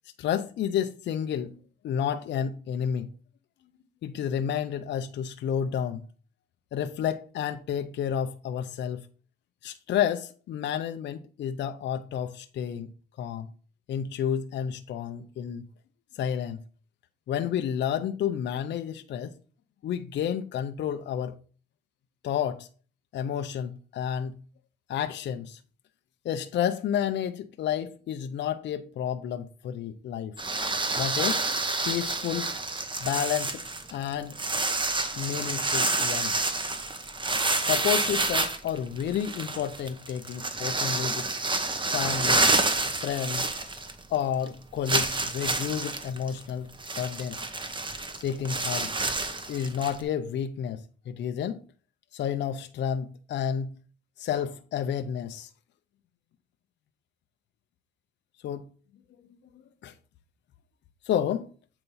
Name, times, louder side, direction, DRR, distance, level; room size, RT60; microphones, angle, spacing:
voice 1, 0.2-1.5 1.8-3.1 4.0-6.0 6.7-9.0 9.6-12.9 13.2-13.5 13.9-15.7 16.1-16.6 17.3-19.3 19.8-21.3 22.2-22.7 23.1-24.3 24.9-25.6 26.2-30.3 30.9-31.4 31.8-32.5 33.0-34.4 35.1-36.3 37.6-41.3 41.9-42.5 43.0-43.5 44.1-46.7 47.0-47.4 48.2-48.9 49.5-51.6 52.1-53.7 54.2-55.5 58.4-58.7 59.8-59.9 61.1-61.5, left 9 dB, 65° left, 0.6 m, -30 dB
sound 1, 30.4-44.2 44.4-44.5 44.9-50.0, right 3 dB, 25° right, 1.0 m, -28 dB
7.9 x 2.9 x 5.4 m
cardioid pair, 90°, 20 cm